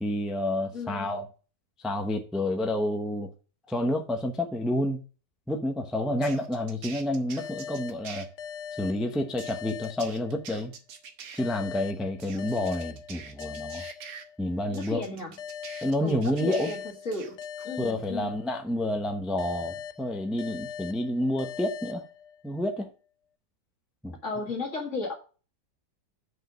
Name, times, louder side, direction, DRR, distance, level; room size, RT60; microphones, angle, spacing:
voice 1, 0.0-1.3 1.8-3.3 3.7-5.0 5.5-8.3 8.8-10.7 11.3-13.9 14.4-15.0 15.8-16.7 17.8-22.1 22.4-22.9 24.0-24.2, left 1 dB, ahead, 0.5 m, -29 dB
voice 2, 0.7-1.3 14.7-15.3 16.0-17.4 17.6-18.4 24.2-25.1, left 3 dB, 45° left, 2.1 m, -34 dB
sound 1, 6.2-8.3 9.4-11.4 12.2-14.2 14.7-16.8 17.1-17.7, right 7 dB, 80° right, 1.6 m, -45 dB
sound 2, 7.4-10.7 11.4-14.7 15.4-18.7 19.4-22.7, left 8 dB, 65° left, 0.8 m, -41 dB
6.1 x 5.3 x 6.1 m
omnidirectional pair, 1.8 m